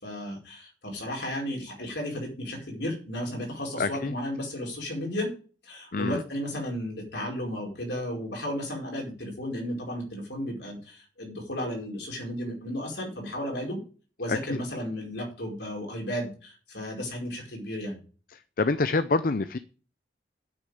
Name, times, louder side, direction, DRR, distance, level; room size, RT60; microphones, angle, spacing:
voice 1, 0.0-5.3 5.6-13.8 14.2-18.0, equal, 70° left, 0 dB, 4.9 m, -34 dB
voice 2, 3.8-4.1 5.9-6.2 14.3-14.6 18.3-19.6, left 3 dB, 50° left, 13 dB, 0.6 m, -27 dB
8.7 x 6.6 x 7.9 m, 0.38 s
head